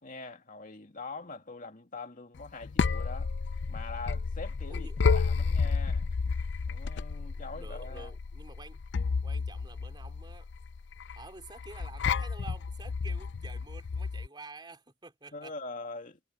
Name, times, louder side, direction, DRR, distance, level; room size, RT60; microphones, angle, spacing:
voice 1, 0.0-3.3 3.7-6.1 6.7-8.1 15.3-16.2, left 3 dB, 45° left, 2.3 m, -43 dB
sound 1, 2.4-14.3, left 5 dB, 65° left, 0.5 m, -31 dB
voice 2, 7.3-8.8 9.2-10.5 11.2-15.5, right 3 dB, 25° right, 4.6 m, -49 dB
head